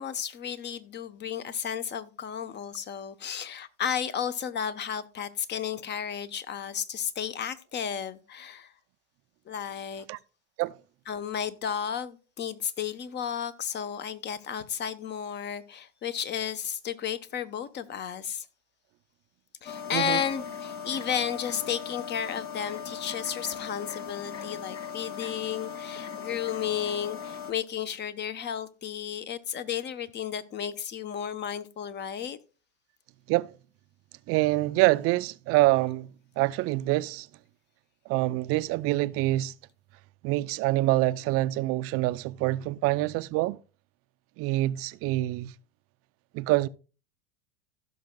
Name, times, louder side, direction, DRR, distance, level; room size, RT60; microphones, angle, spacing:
voice 1, 0.0-8.7 9.5-10.1 11.1-18.5 19.6-32.4, left 8 dB, 30° left, 0.9 m, -33 dB
sound 1, 19.6-27.5, left 7 dB, 60° left, 2.2 m, -39 dB
voice 2, 34.3-37.3 38.1-39.5 40.2-43.6 44.4-45.5 46.3-46.7, right 18 dB, 40° right, 0.5 m, -26 dB
16.0 x 6.2 x 2.2 m
hypercardioid pair, 105°, 36 cm